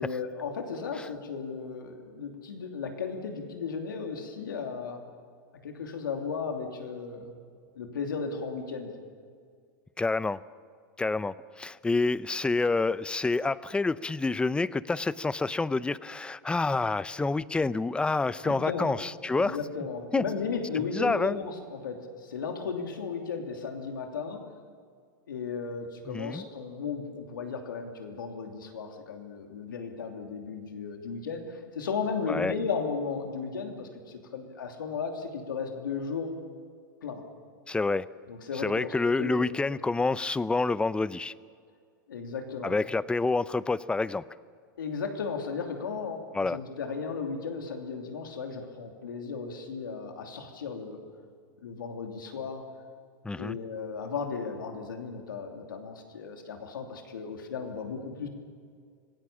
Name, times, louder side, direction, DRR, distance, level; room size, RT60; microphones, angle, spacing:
voice 1, 0.0-5.0 5.6-7.4 7.8-9.0 18.4-18.9 19.3-24.4 25.3-36.3 37.0-37.2 38.3-39.8 42.1-42.7 44.8-51.0 51.6-52.7 53.4-58.3, left 5 dB, 90° left, 4 dB, 3.0 m, -35 dB
voice 2, 10.0-10.4 11.0-19.6 20.1-20.2 20.8-21.4 26.1-26.4 32.3-32.5 37.7-38.1 38.6-41.3 42.6-44.2 46.3-46.6 53.2-53.6, left 3 dB, 10° left, 18 dB, 0.6 m, -28 dB
25.5 x 17.5 x 7.3 m, 2.1 s
hypercardioid pair, 110°, 11 cm